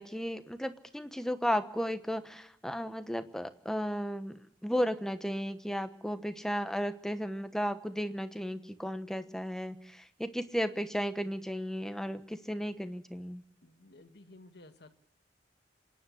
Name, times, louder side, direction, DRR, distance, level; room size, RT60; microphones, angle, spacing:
voice 1, 0.0-13.4, equal, 5° left, 9 dB, 1.1 m, -34 dB
voice 2, 13.6-14.9, left 2 dB, 65° left, 8 dB, 1.7 m, -54 dB
26.5 x 10.5 x 9.8 m, 0.76 s
head